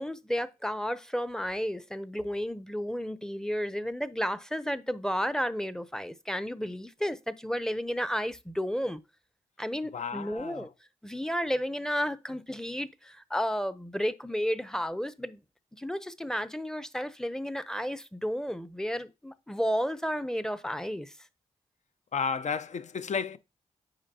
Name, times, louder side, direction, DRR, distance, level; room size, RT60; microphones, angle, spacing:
voice 1, 0.0-9.0 9.6-10.7 11.0-15.4 15.8-21.1, equal, 5° left, 0.7 m, -32 dB
voice 2, 9.9-10.7 22.1-23.4, left 6 dB, 55° left, 0.7 m, -32 dB
8.7 x 5.2 x 2.8 m
supercardioid pair, 45°, 15 cm